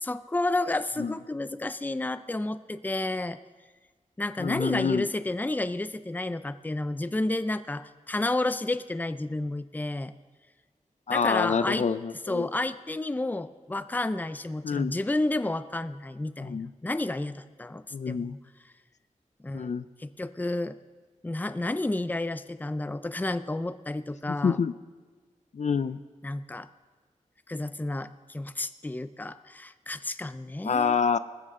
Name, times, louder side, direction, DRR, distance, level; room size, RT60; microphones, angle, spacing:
voice 1, 0.0-3.4 4.2-10.1 11.1-11.9 12.3-18.4 19.4-19.7 20.0-20.8 21.2-24.6 26.2-26.7 27.5-31.0, left 2 dB, 15° left, 13 dB, 0.5 m, -31 dB
voice 2, 4.4-5.1 11.1-12.5 14.6-15.0 16.4-16.7 17.9-18.3 19.5-19.8 24.3-24.7 25.5-26.0 30.6-31.2, left 6 dB, 60° left, 13 dB, 0.5 m, -27 dB
20.0 x 14.5 x 3.7 m, 1.4 s
wide cardioid pair, 95°, 13 cm